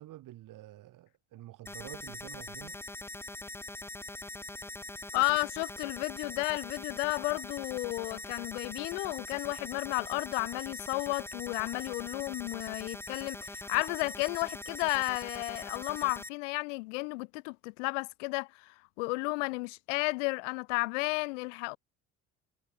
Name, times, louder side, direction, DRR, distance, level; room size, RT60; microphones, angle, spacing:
voice 1, 0.0-2.8, right 15 dB, 60° right, 2.2 m, -48 dB
sound 1, 1.7-16.3, left 2 dB, 5° left, 0.9 m, -43 dB
voice 2, 5.1-21.8, left 27 dB, 85° left, 0.7 m, -33 dB
hypercardioid pair, 65°, 35 cm